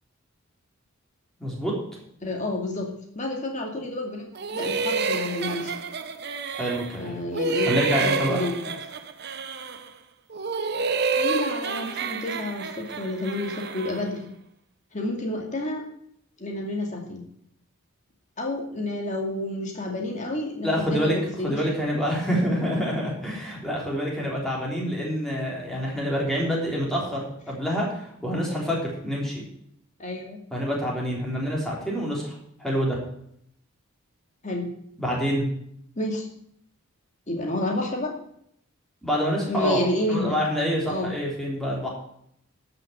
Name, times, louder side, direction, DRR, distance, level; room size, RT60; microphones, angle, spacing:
voice 1, 1.4-1.7 6.5-7.1 7.7-8.4 20.6-21.2 21.4-29.4 30.5-33.0 35.0-35.5 39.0-39.8 40.0-41.9, equal, ahead, -4 dB, 3.6 m, -27 dB
voice 2, 2.2-5.7 7.0-7.7 8.0-8.7 11.1-14.2 14.9-15.8 16.4-17.2 18.4-21.6 30.0-30.4 34.4-34.7 36.0-36.2 37.3-38.1 39.5-40.4 40.9-41.1, left 1 dB, 35° left, 1 dB, 2.4 m, -30 dB
sound 1, 4.3-7.0 7.3-9.9 10.3-14.1, right 4 dB, 50° right, 0.9 m, -29 dB
12.5 x 5.9 x 7.9 m, 0.70 s
head